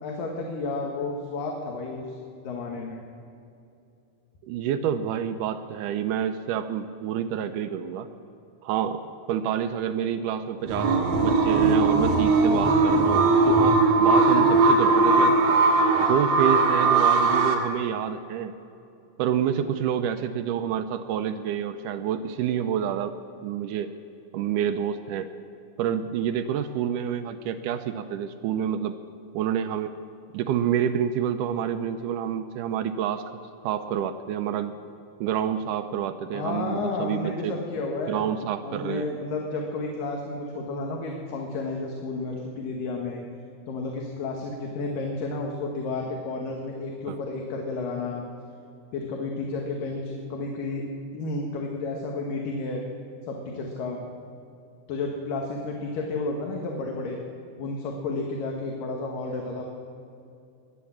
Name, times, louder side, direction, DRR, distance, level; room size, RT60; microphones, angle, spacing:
voice 1, 0.0-2.2 2.4-3.0 36.3-38.2 38.6-43.2 43.7-48.2 48.9-50.8 51.1-52.8 53.3-54.0 54.9-57.2 57.6-59.7, left 3 dB, 85° left, 0 dB, 2.9 m, -31 dB
voice 2, 4.4-8.1 8.6-9.0 9.3-15.4 16.1-18.5 19.2-23.2 23.4-23.9 24.3-25.3 25.8-29.0 29.3-29.9 30.3-33.2 33.6-34.7 35.2-37.6 38.1-39.1 47.1-47.2, right 9 dB, 80° right, 9 dB, 2.1 m, -28 dB
sound 1, 10.7-17.5, right 3 dB, 55° right, 2.2 m, -19 dB
21.0 x 8.2 x 7.3 m, 2.6 s
omnidirectional pair, 3.8 m